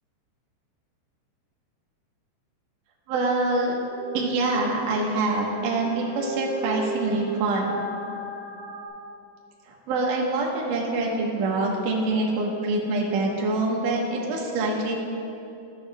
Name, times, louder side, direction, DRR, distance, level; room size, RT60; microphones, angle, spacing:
voice 1, 3.1-3.7 4.1-7.8 9.7-15.0, right 2 dB, 70° right, -2 dB, 2.0 m, -25 dB
sound 1, 3.8-8.9, left 1 dB, 75° left, 4.2 m, -36 dB
14.5 x 10.0 x 2.3 m, 2.8 s
omnidirectional pair, 5.4 m